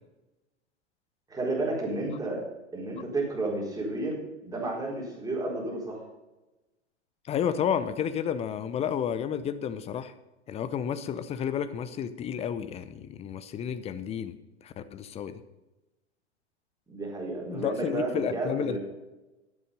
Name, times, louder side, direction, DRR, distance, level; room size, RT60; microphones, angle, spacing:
voice 1, 1.3-2.4 2.7-6.0 16.9-18.8, right 2 dB, 10° right, -3 dB, 4.2 m, -32 dB
voice 2, 7.2-10.1 10.5-15.4 17.5-18.8, left 8 dB, 20° left, 12 dB, 0.7 m, -31 dB
12.5 x 9.8 x 5.3 m, 1.1 s
figure-of-eight pair, 100°, 35 cm